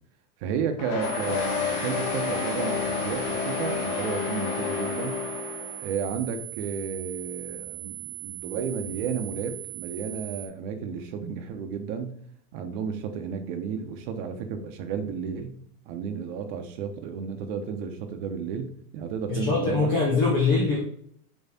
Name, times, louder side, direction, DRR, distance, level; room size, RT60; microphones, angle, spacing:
voice 1, 0.4-5.2 5.8-12.1 12.5-15.6 15.9-19.9 20.1-20.3, right 6 dB, 40° right, 7 dB, 0.9 m, -32 dB
sound 1, 0.8-5.9, left 5 dB, 35° left, 1.2 m, -29 dB
sound 2, 1.0-10.5, right 23 dB, 85° right, 1.5 m, -39 dB
voice 2, 19.3-20.8, left 4 dB, 15° left, -3 dB, 0.3 m, -23 dB
7.1 x 3.2 x 4.2 m, 0.65 s
supercardioid pair, 150°, 47 cm